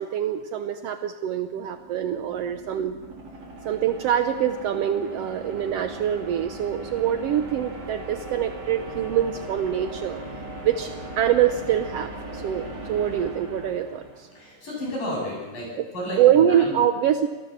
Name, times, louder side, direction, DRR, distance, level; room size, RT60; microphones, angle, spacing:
voice 1, 0.0-3.0 3.6-10.2 10.6-14.3 16.2-17.3, right 10 dB, 75° right, 8 dB, 1.4 m, -24 dB
sound 1, 1.5-14.6, right 2 dB, 50° right, 5.0 m, -39 dB
voice 2, 14.3-15.7 15.9-16.8, left 1 dB, 80° left, -2 dB, 9.8 m, -32 dB
27.0 x 17.5 x 7.3 m, 1.2 s
omnidirectional pair, 3.9 m